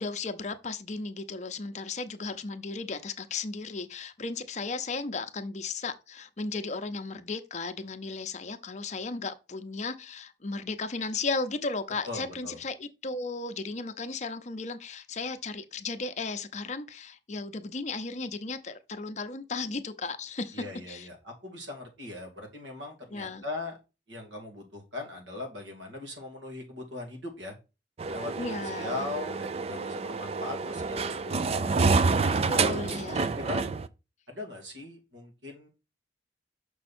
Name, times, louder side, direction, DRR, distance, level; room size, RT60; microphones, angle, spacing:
voice 1, 0.0-21.1 23.1-23.4 28.4-29.0 32.3-33.3, left 3 dB, 40° left, 0.7 m, -35 dB
voice 2, 12.0-12.6 20.5-23.8 24.1-27.6 28.1-32.0 32.5-32.8 33.1-33.6 34.3-35.7, left 2 dB, 85° right, 2.7 m, -40 dB
sound 1, 28.0-33.9, right 4 dB, 35° right, 0.4 m, -28 dB
6.4 x 5.5 x 4.3 m
head